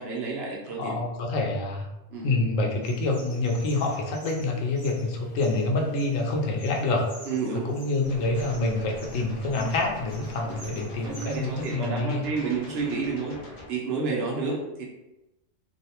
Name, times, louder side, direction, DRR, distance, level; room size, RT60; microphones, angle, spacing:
voice 1, 0.0-0.9 2.1-2.3 7.3-7.7 10.7-13.4 13.7-14.8, right 4 dB, 65° right, -2 dB, 0.7 m, -30 dB
voice 2, 0.8-1.9 2.2-7.1 7.7-12.3, left 2 dB, 90° left, 0 dB, 1.0 m, -27 dB
sound 1, 2.8-11.7, equal, 35° left, 1.0 m, -49 dB
sound 2, 8.0-13.7, left 1 dB, 55° left, 0.4 m, -43 dB
2.6 x 2.1 x 2.8 m, 0.97 s
omnidirectional pair, 1.3 m